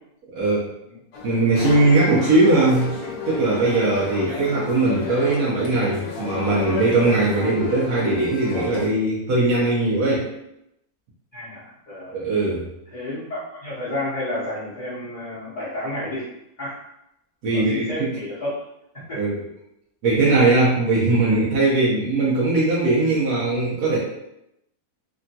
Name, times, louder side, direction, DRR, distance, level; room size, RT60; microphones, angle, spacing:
voice 1, 0.3-0.7 1.2-2.9 3.3-10.3 12.1-12.6 17.4-18.1 19.1-19.4 20.0-24.0, right 2 dB, 85° right, -7 dB, 1.3 m, -20 dB
sound 1, 1.1-8.9, left 4 dB, 90° left, 1.1 m, -31 dB
voice 2, 11.3-12.2 12.9-16.3 16.6-16.8 17.5-18.5 19.1-19.2, left 1 dB, 40° left, -9 dB, 0.7 m, -31 dB
3.4 x 2.2 x 2.7 m, 0.83 s
omnidirectional pair, 1.6 m